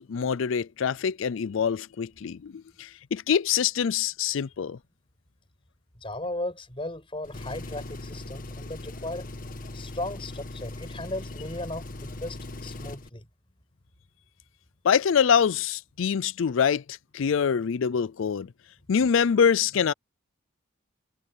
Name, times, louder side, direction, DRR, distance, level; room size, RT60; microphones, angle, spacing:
voice 1, 0.0-4.8 14.8-18.5 18.9-19.9, left 7 dB, 70° left, 0.4 m, -25 dB
voice 2, 6.0-9.3 9.7-13.3, left 1 dB, 25° left, 5.5 m, -36 dB
Engine, 7.2-13.1, left 2 dB, 40° left, 1.3 m, -39 dB
head